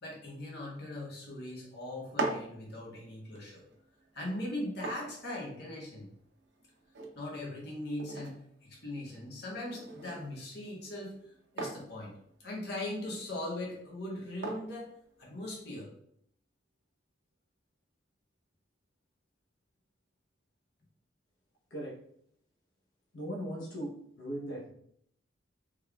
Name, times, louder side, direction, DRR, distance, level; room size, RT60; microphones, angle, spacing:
voice 1, 0.0-3.6 4.1-6.1 7.1-11.1 11.5-12.1 12.4-14.9 15.2-15.9, left 1 dB, 55° left, -3 dB, 1.0 m, -40 dB
sound 1, 1.9-15.8, right 2 dB, 65° right, 0.6 m, -44 dB
voice 2, 23.1-24.7, equal, 85° left, -4 dB, 0.8 m, -38 dB
3.6 x 3.2 x 2.3 m, 0.68 s
head